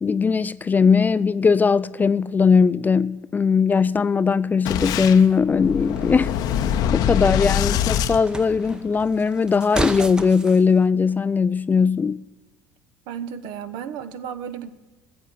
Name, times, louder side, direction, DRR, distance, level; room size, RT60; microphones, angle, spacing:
voice 1, 0.0-6.3 6.9-12.2, left 5 dB, 20° left, 0.3 m, -19 dB
Boom, 4.6-9.0, left 9 dB, 55° left, 0.7 m, -24 dB
sound 1, 5.6-10.6, right 2 dB, 10° right, 0.7 m, -34 dB
voice 2, 13.1-14.7, right 8 dB, 60° right, 0.8 m, -33 dB
14.0 x 7.9 x 6.8 m
figure-of-eight pair, 60°, 8 cm